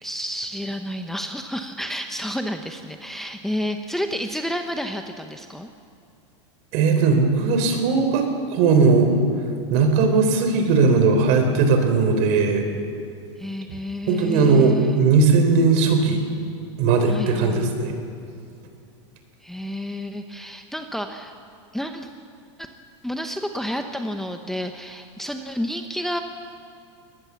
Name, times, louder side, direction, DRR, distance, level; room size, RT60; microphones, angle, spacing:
voice 1, 0.0-5.7 13.4-15.0 17.1-17.7 19.4-21.3 21.7-22.1 22.6-22.7 23.0-26.2, equal, ahead, 5 dB, 0.9 m, -30 dB
voice 2, 6.7-9.1 9.7-12.7 14.1-16.2 16.8-18.0, right 4 dB, 50° right, 6 dB, 4.1 m, -18 dB
22.5 x 19.0 x 7.2 m, 2.4 s
supercardioid pair, 140°, 15 cm